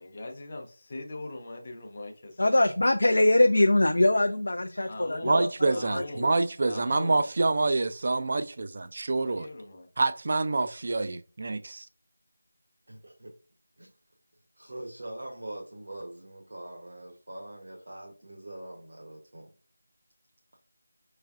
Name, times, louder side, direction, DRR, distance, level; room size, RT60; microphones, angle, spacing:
voice 1, 0.0-2.6 4.9-5.4 5.7-6.3 6.6-7.3 9.2-9.9, left 2 dB, 30° left, 0.8 m, -40 dB
voice 2, 2.4-6.3, left 1 dB, 60° left, 0.4 m, -23 dB
voice 3, 5.2-9.5 10.0-11.9, right 3 dB, 40° right, 0.3 m, -27 dB
voice 4, 12.9-13.3 13.8-13.9 14.6-19.5, right 1 dB, 60° right, 0.9 m, -43 dB
4.9 x 3.2 x 2.4 m
figure-of-eight pair, 165°, 0 cm